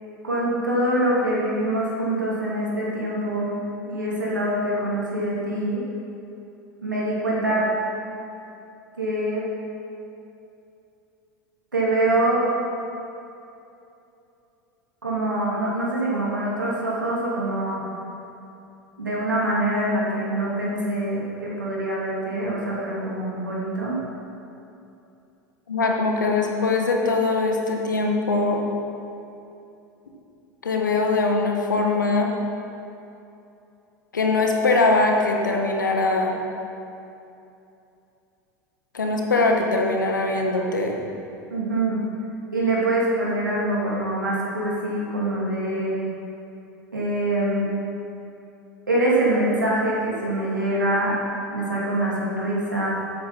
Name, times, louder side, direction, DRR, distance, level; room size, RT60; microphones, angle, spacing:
voice 1, 0.2-3.6 3.9-5.8 6.8-7.7 9.0-9.5 11.7-12.4 15.0-17.8 19.0-24.0 41.5-42.0 42.5-46.0 46.9-47.7 48.9-51.1 51.5-52.9, right 1 dB, 80° right, -5 dB, 2.8 m, -24 dB
voice 2, 25.7-28.6 30.6-32.3 34.1-36.3 38.9-41.0, left 3 dB, 75° left, 1 dB, 1.5 m, -22 dB
12.0 x 8.7 x 5.7 m, 2.8 s
figure-of-eight pair, 80°, 10 cm